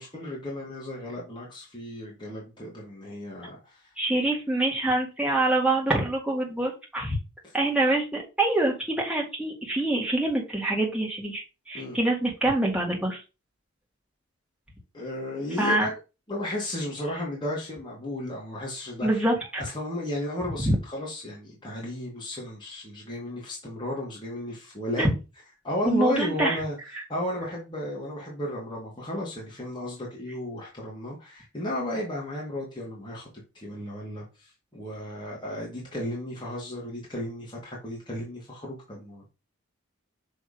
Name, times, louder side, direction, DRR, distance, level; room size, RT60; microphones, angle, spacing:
voice 1, 0.0-3.9 7.4-7.6 11.7-12.0 14.9-15.9 16.3-19.2 19.6-25.1 25.6-26.8 27.1-33.3 33.5-39.3, left 1 dB, 20° left, 1.8 m, -34 dB
voice 2, 4.0-7.2 7.5-13.2 15.6-15.9 19.0-19.6 20.6-20.7 25.0-25.1 25.9-26.6, right 2 dB, 5° right, 1.8 m, -25 dB
6.3 x 3.4 x 5.0 m
head